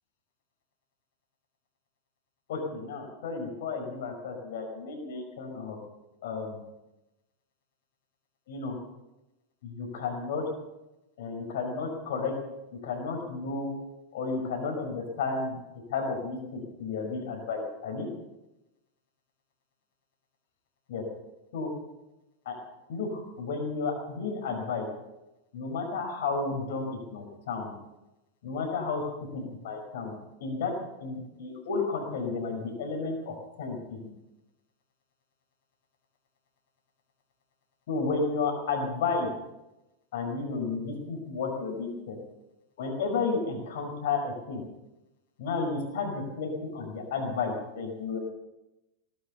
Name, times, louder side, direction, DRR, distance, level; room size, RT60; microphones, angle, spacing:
voice 1, 2.5-5.8 6.2-6.6 8.5-8.8 9.6-10.4 11.2-12.3 12.8-13.7 14.1-15.6 15.9-18.1 20.9-21.0 21.5-21.7 22.5-22.6 22.9-24.9 25.5-27.7 28.4-29.0 29.3-30.1 30.4-30.7 31.0-34.0 37.9-39.3 40.1-42.2 42.8-44.6 45.4-48.2, left 4 dB, 55° left, 3 dB, 5.4 m, -32 dB
18.5 x 11.5 x 6.8 m, 0.96 s
figure-of-eight pair, 90°, 0 cm